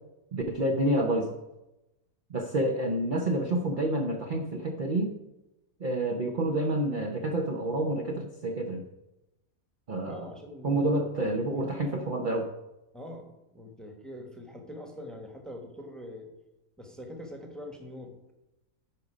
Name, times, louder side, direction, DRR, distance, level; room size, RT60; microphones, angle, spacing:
voice 1, 0.3-1.3 2.3-5.1 5.8-8.8 9.9-10.3 10.6-12.5, right 1 dB, 45° right, 2 dB, 0.7 m, -28 dB
voice 2, 10.0-11.7 12.9-16.3 16.8-18.3, left 1 dB, ahead, 3 dB, 1.1 m, -44 dB
10.0 x 5.3 x 5.0 m, 0.95 s
omnidirectional pair, 1.6 m